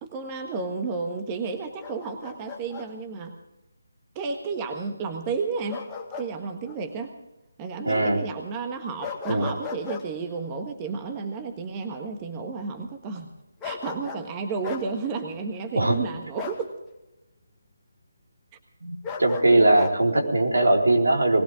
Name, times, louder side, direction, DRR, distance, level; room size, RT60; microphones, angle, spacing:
voice 1, 0.0-3.3 4.1-5.8 6.2-7.1 7.6-13.3 13.6-16.7 19.5-19.8, right 4 dB, 20° right, 5 dB, 1.4 m, -32 dB
Bark, 1.8-2.9 5.7-6.3 6.7-6.8 9.0-10.1 13.6-14.3 14.6-14.9 16.4-16.6 19.0-20.0, left 6 dB, 15° left, 1.7 m, -36 dB
voice 2, 7.8-8.2 9.3-9.5 15.7-16.0 18.8-18.9 19.2-21.4, right 2 dB, 85° right, 0 dB, 4.3 m, -20 dB
20.5 x 17.5 x 3.7 m, 0.93 s
figure-of-eight pair, 155°, 0 cm